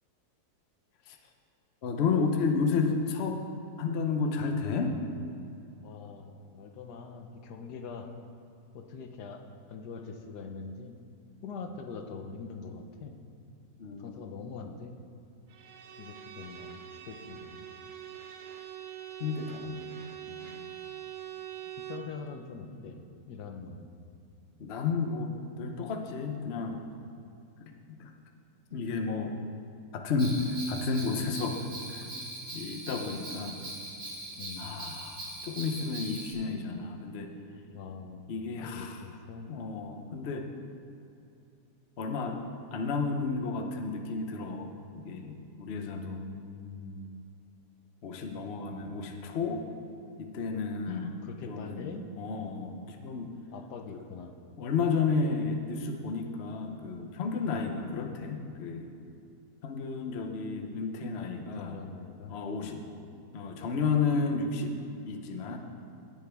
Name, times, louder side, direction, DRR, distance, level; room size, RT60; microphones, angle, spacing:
voice 1, 1.8-3.4 3.8-5.0 13.8-14.2 19.2-19.7 24.6-25.3 25.6-26.8 27.6-28.1 28.7-29.3 29.9-31.6 31.9-32.1 32.5-33.6 34.6-37.3 38.3-39.0 39.5-40.5 42.0-42.4 42.7-46.2 48.0-49.6 50.2-51.0 51.5-53.3 54.6-58.9 59.6-61.8 62.3-62.8 63.3-64.7 65.1-65.6, left 4 dB, 50° left, 4 dB, 0.9 m, -32 dB
voice 2, 5.8-8.1 8.7-9.4 9.7-11.0 11.4-13.1 14.0-14.9 16.0-17.7 19.6-20.7 21.9-23.9 34.4-34.7 37.7-38.3 38.6-39.5 45.6-47.2 48.6-49.5 50.9-52.1 53.5-54.3 57.5-57.8 61.6-62.8, left 5 dB, 75° left, 5 dB, 1.4 m, -43 dB
Bowed string instrument, 15.5-22.2, right 11 dB, 85° right, 1.4 m, -44 dB
Bell, 30.2-36.3, right 1 dB, 50° right, 2.1 m, -41 dB
17.5 x 7.0 x 3.4 m, 2.6 s
omnidirectional pair, 1.8 m